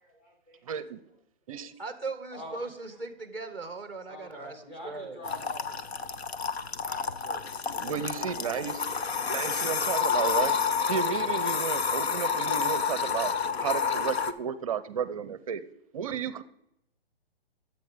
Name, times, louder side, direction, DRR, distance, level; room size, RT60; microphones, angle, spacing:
voice 1, 0.0-0.7 1.6-1.7 2.3-2.6 4.1-5.8 6.8-7.6 8.1-8.6, equal, 25° left, -1 dB, 3.6 m, -45 dB
voice 2, 0.6-1.0 1.5-1.7 7.8-8.8 9.3-10.6 10.9-13.3 13.6-15.6 15.9-16.4, right 7 dB, 35° right, 15 dB, 0.6 m, -32 dB
voice 3, 1.8-5.2, right 3 dB, 5° left, 8 dB, 0.9 m, -39 dB
sound 1, 5.2-14.3, left 6 dB, 80° left, 0.9 m, -29 dB
11.5 x 8.1 x 5.0 m, 0.79 s
hypercardioid pair, 150°, 31 cm